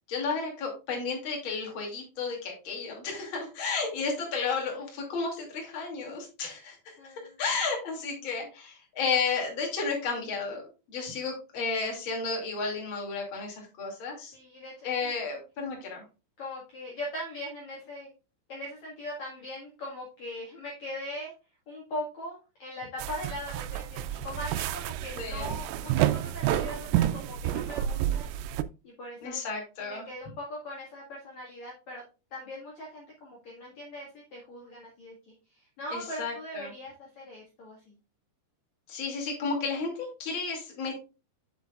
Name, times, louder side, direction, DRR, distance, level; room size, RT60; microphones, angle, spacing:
voice 1, 0.1-6.8 7.4-10.6 10.9-14.3 14.8-16.0 25.2-25.5 29.2-30.0 35.9-36.7 38.9-41.0, left 4 dB, 35° left, 0 dB, 2.6 m, -32 dB
voice 2, 7.0-7.4 14.3-15.1 16.4-18.1 18.5-21.3 21.7-28.3 28.8-29.4 29.8-32.0 32.3-37.9, left 1 dB, 50° left, -3 dB, 2.5 m, -40 dB
sound 1, 23.0-28.6, right 12 dB, 90° right, 2.9 m, -29 dB
8.0 x 7.6 x 2.4 m, 0.30 s
omnidirectional pair, 5.2 m